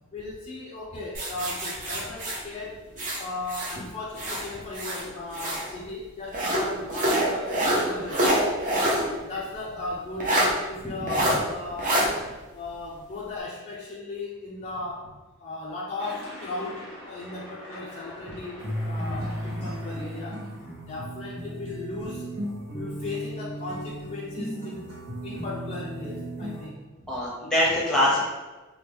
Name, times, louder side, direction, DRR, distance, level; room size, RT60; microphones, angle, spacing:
voice 1, 0.1-2.9 3.2-8.6 9.1-12.0 12.5-15.1 15.4-20.4 20.8-22.3 22.7-24.9 25.2-26.8, left 2 dB, 30° left, -5 dB, 0.3 m, -36 dB
sound 1, 1.1-3.8 4.1-5.7 6.3-9.1 9.4-9.5 10.2-10.5 11.1-11.4 11.8-12.1, right 1 dB, 35° right, 0.7 m, -26 dB
sound 2, 16.0-20.9, equal, 60° right, 1.2 m, -44 dB
sound 3, 18.6-26.6, equal, 80° right, 1.3 m, -35 dB
voice 2, 27.0-28.2, left 1 dB, ahead, -5 dB, 0.8 m, -24 dB
2.9 x 2.2 x 3.3 m, 1.2 s
head